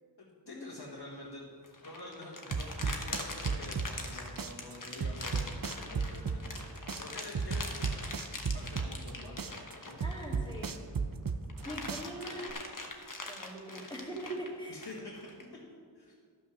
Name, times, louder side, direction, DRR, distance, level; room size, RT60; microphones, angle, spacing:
voice 1, 0.2-1.5 1.8-8.0 8.5-9.4 9.9-10.0 14.7-15.3 15.9-16.1, left 2 dB, 65° left, -5 dB, 1.7 m, -47 dB
sound 1, 1.6-10.9 11.3-15.4, left 2 dB, 45° left, 1.1 m, -43 dB
sound 2, 2.5-4.1 4.4-6.6 6.9-9.1 9.4-11.6 11.9-12.5, right 5 dB, 50° right, 0.6 m, -33 dB
voice 2, 10.0-10.7 11.6-12.5 13.3-14.8, right 1 dB, 10° left, -5 dB, 2.3 m, -42 dB
12.0 x 5.8 x 6.3 m, 2.1 s
wide cardioid pair, 50°, 43 cm